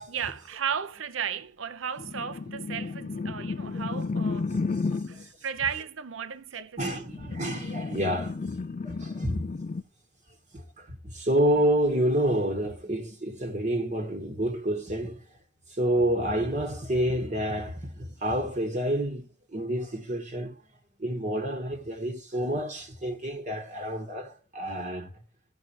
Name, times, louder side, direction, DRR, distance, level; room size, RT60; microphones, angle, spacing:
voice 1, 0.1-4.6 5.1-7.1, right 7 dB, 65° right, 0.7 m, -34 dB
sound 1, 2.0-5.2 7.0-9.8, left 4 dB, 35° left, 0.3 m, -32 dB
voice 2, 4.9-5.3 6.8-8.4 8.8-9.4 10.5-15.2 15.7-19.2 19.5-20.6 21.0-25.1, right 1 dB, 35° right, 1.2 m, -29 dB
15.0 x 5.9 x 2.9 m
head